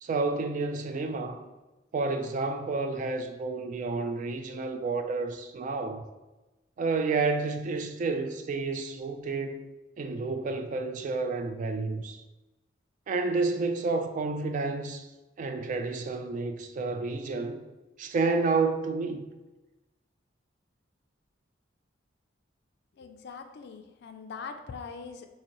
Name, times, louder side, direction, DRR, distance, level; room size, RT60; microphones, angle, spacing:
voice 1, 0.0-1.4 1.9-6.0 6.8-9.6 10.0-12.2 13.1-15.1 15.4-17.6 18.0-19.2, right 3 dB, 45° right, 0.3 m, -30 dB
voice 2, 23.0-25.3, left 5 dB, 60° left, 0.4 m, -42 dB
3.9 x 2.6 x 2.9 m
head